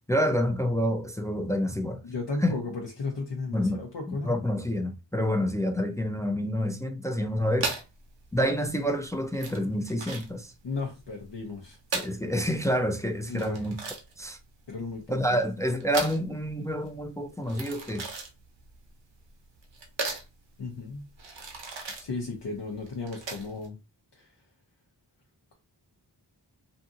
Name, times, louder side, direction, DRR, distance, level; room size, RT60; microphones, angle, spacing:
voice 1, 0.1-2.0 2.4-2.6 3.5-3.8 4.1-7.8 8.3-10.5 11.9-13.8 14.2-14.4 15.1-18.1, equal, 10° left, 0.3 m, -28 dB
voice 2, 2.0-4.4 10.6-11.8 13.3-13.6 14.7-15.4 20.6-21.1 22.0-23.8 24.1-24.3, left 3 dB, 70° left, 0.7 m, -35 dB
sound 1, 7.6-23.7, right 4 dB, 80° right, 0.7 m, -38 dB
2.6 x 2.6 x 2.4 m
wide cardioid pair, 40°, 43 cm